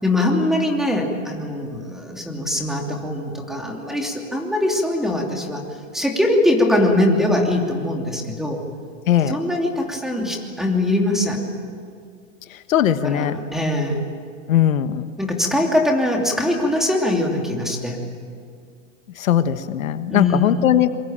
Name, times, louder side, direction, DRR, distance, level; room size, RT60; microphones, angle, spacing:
voice 1, 0.0-5.6 5.9-8.6 9.3-11.4 12.8-14.0 15.2-18.0 20.1-20.7, left 1 dB, ahead, 1 dB, 2.8 m, -22 dB
voice 2, 9.1-9.4 12.7-13.4 14.5-15.1 19.2-21.0, left 10 dB, 85° left, 10 dB, 1.5 m, -19 dB
27.0 x 23.5 x 9.0 m, 2.2 s
supercardioid pair, 155°, 40 cm